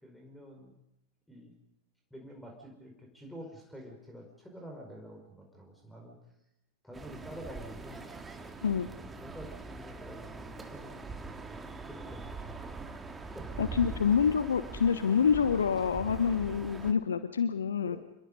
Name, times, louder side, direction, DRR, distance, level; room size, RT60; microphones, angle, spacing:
voice 1, 0.0-0.7 1.3-1.5 2.1-6.2 6.8-8.1 8.9-13.7 17.9-18.0, equal, 5° left, 2 dB, 5.2 m, -48 dB
sound 1, 6.9-16.9, right 3 dB, 15° right, 2.1 m, -43 dB
voice 2, 13.6-18.0, left 7 dB, 70° left, 12 dB, 1.0 m, -27 dB
28.5 x 21.5 x 5.4 m, 0.88 s
figure-of-eight pair, 90°, 0 cm